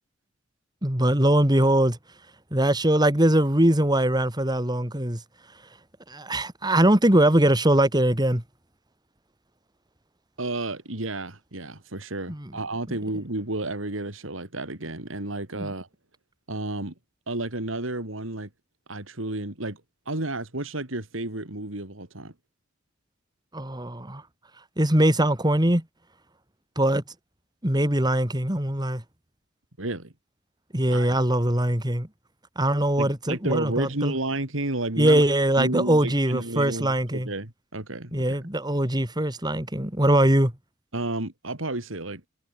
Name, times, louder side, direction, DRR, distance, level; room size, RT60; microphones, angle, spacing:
voice 1, 0.8-2.0 2.5-5.2 6.1-8.4 12.3-12.5 15.6-15.7 23.5-24.2 24.8-25.8 26.8-27.0 27.6-29.0 30.7-32.1 32.6-34.1 35.0-37.3 38.1-40.5, right 1 dB, 20° right, 3.1 m, -22 dB
voice 2, 10.4-15.9 16.5-16.9 17.3-18.5 18.9-19.8 20.1-22.3 29.8-30.1 30.9-31.1 33.0-35.2 35.6-38.4 40.9-42.2, right 2 dB, 85° right, 3.3 m, -31 dB
head